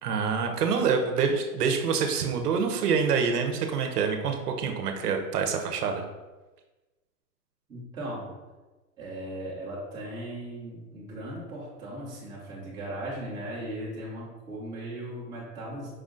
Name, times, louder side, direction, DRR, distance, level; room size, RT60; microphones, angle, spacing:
voice 1, 0.0-6.0, right 6 dB, 80° right, 4 dB, 0.8 m, -26 dB
voice 2, 7.7-8.3 9.0-15.9, right 1 dB, 10° right, -7 dB, 0.7 m, -37 dB
4.9 x 2.4 x 3.8 m, 1.2 s
hypercardioid pair, 155°, 46 cm